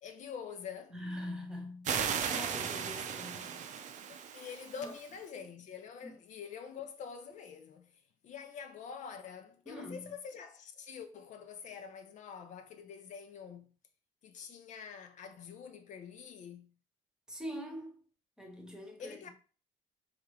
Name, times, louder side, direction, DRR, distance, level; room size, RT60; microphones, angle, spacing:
voice 1, 0.0-0.9 4.1-13.7 14.2-16.7 19.0-19.3, left 6 dB, 60° left, 0.6 m, -46 dB
voice 2, 0.9-3.6 4.3-4.5 4.8-4.9 6.0-6.1 9.7-10.1 17.3-18.0 18.4-19.3, left 1 dB, 5° right, 1.1 m, -43 dB
sound 1, 1.8-5.2, right 7 dB, 60° right, 0.6 m, -36 dB
3.7 x 3.0 x 4.7 m
cardioid pair, 130°, 14 cm